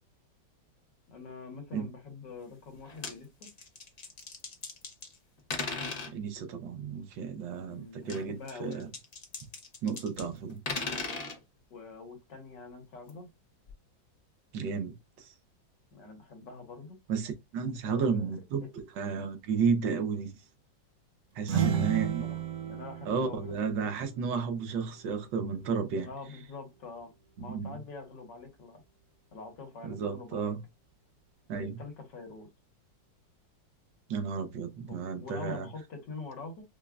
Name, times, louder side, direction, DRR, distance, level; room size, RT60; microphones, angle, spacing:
voice 1, 1.1-3.3 7.7-8.9 11.7-13.3 15.9-17.0 17.8-18.3 18.6-18.7 21.5-23.9 26.0-27.1 27.4-28.8 29.3-30.5 31.5-32.5 34.9-36.6, left 3 dB, 75° left, 1.8 m, -45 dB
sound 1, 2.7-3.1 3.4-5.2 5.5-6.1 8.0-10.2 10.5-11.4 13.1-13.2 13.7-13.8, left 3 dB, 50° left, 0.4 m, -37 dB
voice 2, 6.1-8.9 9.8-10.6 14.5-15.3 17.1-20.4 21.3-22.2 23.1-26.1 27.4-27.8 29.8-30.6 31.5-31.8 34.1-35.7, right 5 dB, 85° right, 1.4 m, -32 dB
sound 2, 21.4-25.1, right 9 dB, 60° right, 1.0 m, -34 dB
5.3 x 2.3 x 2.3 m
omnidirectional pair, 2.0 m